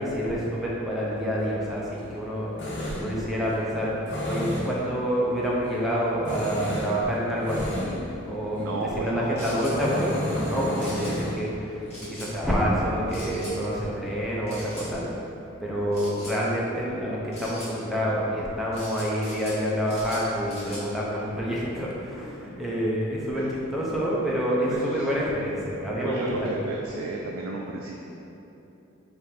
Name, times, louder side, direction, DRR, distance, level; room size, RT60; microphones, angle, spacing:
voice 1, 0.0-2.5 2.8-4.0 4.2-15.0 15.6-26.5, equal, ahead, -6 dB, 0.5 m, -27 dB
Tools, 1.0-15.1, left 1 dB, 60° left, 0.8 m, -35 dB
voice 2, 8.6-9.5 23.3-23.5 24.6-25.0 26.0-27.9, right 3 dB, 75° right, -1 dB, 0.3 m, -32 dB
sound 1, 9.4-9.8 10.8-11.1 11.9-12.3 13.1-13.6 14.5-14.9 15.9-16.4 17.3-17.7 18.7-19.6 19.9-20.8, equal, 30° left, 1.1 m, -41 dB
3.3 x 2.5 x 4.3 m, 2.9 s
head